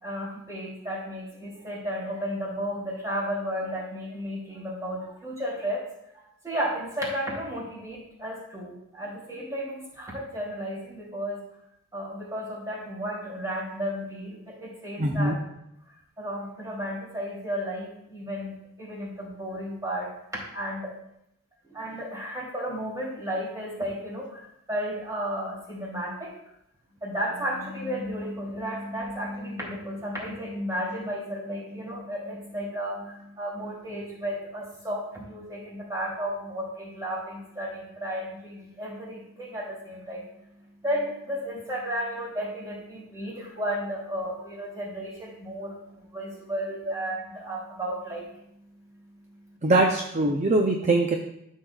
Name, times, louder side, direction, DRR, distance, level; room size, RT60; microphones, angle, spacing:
voice 1, 0.0-5.8 6.4-11.4 11.9-15.3 16.2-20.1 20.5-21.0 21.6-26.4 27.0-49.6, equal, 15° right, -6 dB, 3.0 m, -33 dB
voice 2, 15.0-15.4 49.6-51.2, right 2 dB, 35° right, 3 dB, 0.5 m, -22 dB
12.5 x 6.5 x 2.4 m, 0.80 s
head